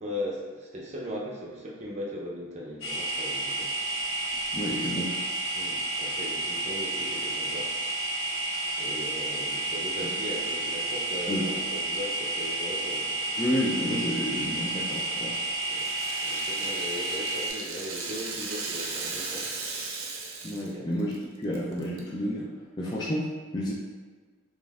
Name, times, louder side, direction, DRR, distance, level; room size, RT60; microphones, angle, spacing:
voice 1, 0.0-3.7 5.5-7.7 8.8-13.3 15.7-15.9 16.2-19.5 20.7-20.8, equal, 35° right, -3 dB, 0.6 m, -38 dB
sound 1, 2.8-17.5, right 2 dB, 60° left, 0.7 m, -31 dB
voice 2, 4.5-5.1 11.3-11.5 13.4-15.3 20.4-23.7, equal, 20° left, -4 dB, 0.3 m, -30 dB
Rattle (instrument), 14.9-20.7 21.0-21.1 21.5-22.0, right 4 dB, 90° right, 0.6 m, -37 dB
5.2 x 2.5 x 2.4 m, 1.5 s
head